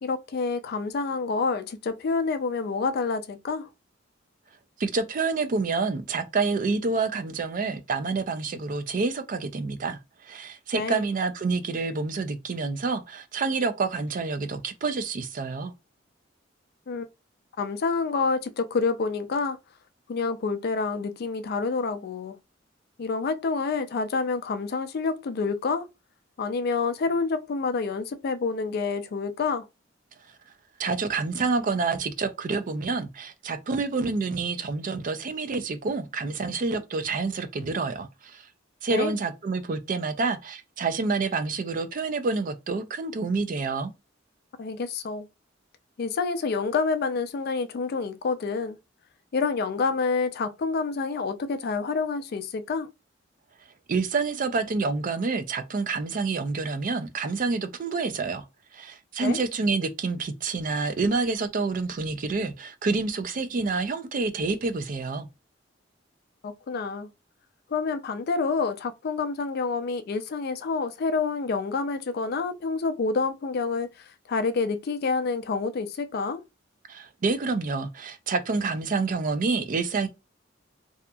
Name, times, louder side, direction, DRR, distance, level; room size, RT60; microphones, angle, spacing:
voice 1, 0.0-3.7 10.7-11.0 16.9-17.1 17.6-19.6 20.1-22.4 23.0-25.9 26.4-29.7 38.9-39.2 44.6-45.3 46.0-48.8 49.3-52.9 59.2-59.4 66.4-67.1 67.7-76.4, left 4 dB, 55° left, 0.4 m, -28 dB
voice 2, 4.8-15.7 30.8-38.5 38.8-43.9 53.9-58.4 58.7-65.3 76.9-80.1, right 4 dB, 45° right, 0.4 m, -28 dB
2.7 x 2.4 x 2.2 m
head